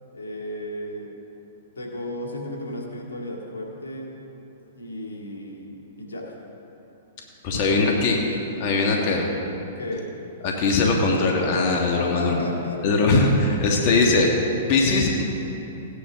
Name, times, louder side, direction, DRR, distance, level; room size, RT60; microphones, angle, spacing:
voice 1, 0.1-1.1 1.8-4.1 4.7-6.3 7.5-8.3 9.8-10.1 11.9-13.1, left 1 dB, 90° left, -1 dB, 2.1 m, -34 dB
voice 2, 7.4-8.2 8.6-9.3 10.4-12.5 12.8-14.3 14.7-15.2, left 3 dB, 50° left, 0 dB, 1.6 m, -20 dB
16.5 x 9.9 x 3.6 m, 2.9 s
hypercardioid pair, 125°, 0 cm